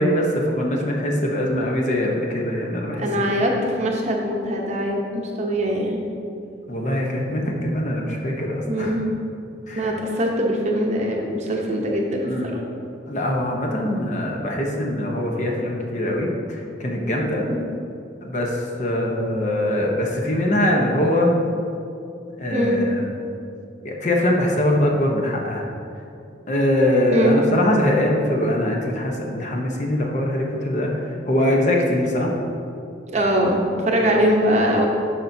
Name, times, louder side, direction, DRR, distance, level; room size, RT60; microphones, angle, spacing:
voice 1, 0.0-3.1 6.7-9.0 9.7-9.9 12.2-12.5 13.1-17.5 18.2-21.4 22.4-23.1 23.8-25.6 26.5-30.9 31.3-32.3 34.0-34.2, left 1 dB, 40° left, 0 dB, 0.8 m, -22 dB
voice 2, 3.0-5.0 5.4-6.0 8.7-9.0 9.8-12.6 17.5-17.6 22.5-22.8 27.1-27.3 33.1-34.9, equal, 35° right, 0 dB, 0.8 m, -22 dB
9.6 x 5.8 x 2.7 m, 2.6 s
head